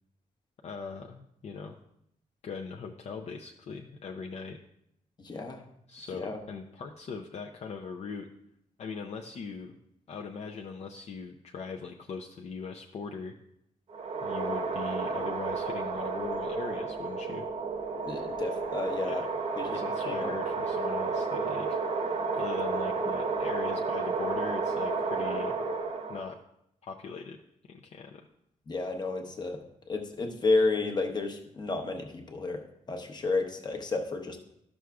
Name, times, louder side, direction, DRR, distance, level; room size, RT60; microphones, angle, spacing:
voice 1, 0.6-1.7 2.4-4.6 5.9-8.3 8.8-9.8 10.1-13.3 14.2-17.4 19.0-19.2 19.6-21.8 22.3-25.6 26.1-26.4 26.8-27.4 27.7-28.3, left 5 dB, 50° left, 2 dB, 0.5 m, -40 dB
voice 2, 5.2-5.6 6.1-6.4 18.1-19.2 19.6-20.3 28.7-34.4, left 3 dB, 30° left, 4 dB, 0.8 m, -31 dB
sound 1, 13.9-26.4, right 4 dB, 50° right, 0.7 m, -31 dB
12.5 x 6.1 x 2.3 m, 0.76 s
wide cardioid pair, 175°, 14 cm